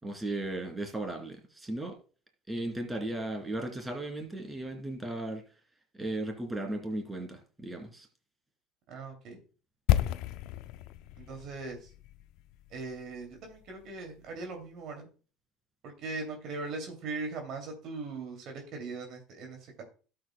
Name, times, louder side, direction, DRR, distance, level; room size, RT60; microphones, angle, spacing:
voice 1, 0.0-1.9 2.5-5.4 6.0-8.1, right 1 dB, 15° right, 2 dB, 2.8 m, -36 dB
voice 2, 8.9-9.4 11.2-11.8 12.7-15.1 15.8-19.8, right 3 dB, 60° right, 3 dB, 2.6 m, -40 dB
sound 1, 9.9-13.8 14.1-14.2, left 13 dB, 70° left, 0.4 m, -32 dB
13.0 x 7.8 x 2.2 m, 0.37 s
supercardioid pair, 95°, 0 cm